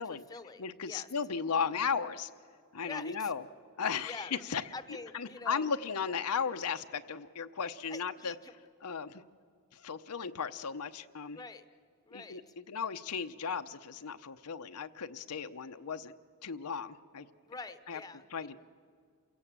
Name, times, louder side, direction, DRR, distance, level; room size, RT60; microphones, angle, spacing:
voice 1, 0.0-1.1 2.8-3.3 4.0-4.3 4.7-5.7 7.9-8.5 11.3-11.6 12.1-12.5 17.5-18.5, left 3 dB, 15° left, 11 dB, 0.9 m, -46 dB
voice 2, 0.6-2.3 2.7-3.4 3.8-4.6 5.1-8.3 8.8-9.2 9.7-11.4 12.1-16.1 16.4-17.3 17.9-18.0 18.3-18.6, left 6 dB, 85° left, 9 dB, 0.8 m, -35 dB
28.0 x 16.5 x 7.4 m, 2.2 s
head